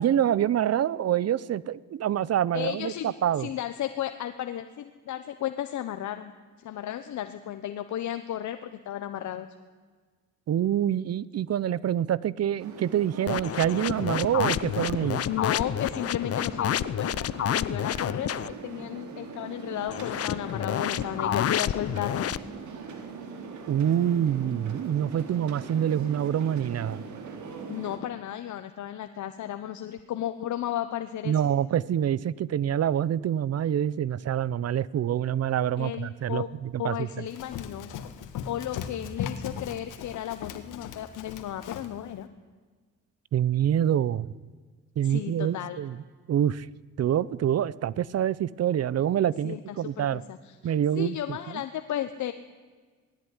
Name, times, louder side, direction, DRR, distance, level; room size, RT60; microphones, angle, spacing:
voice 1, 0.0-3.5 10.5-15.2 23.7-27.0 31.2-37.1 43.3-44.3 45.0-46.0 46.3-46.7 47.0-50.2 50.6-51.2, right 10 dB, 55° right, 21 dB, 0.8 m, -26 dB
voice 2, 2.5-3.1 3.4-6.3 6.6-9.5 15.2-22.3 27.7-31.3 35.8-36.5 36.8-37.9 38.4-42.3 45.0-45.8 49.4-52.3, left 11 dB, 70° left, 9 dB, 1.2 m, -34 dB
sound 1, 12.6-28.0, right 4 dB, 70° right, 3.8 m, -41 dB
sound 2, 13.3-18.5 19.9-22.4, left 10 dB, 50° left, 0.8 m, -29 dB
Run, 37.3-42.0, left 8 dB, 85° left, 1.9 m, -38 dB
19.5 x 16.0 x 9.9 m, 1.5 s
cardioid pair, 90°, 30 cm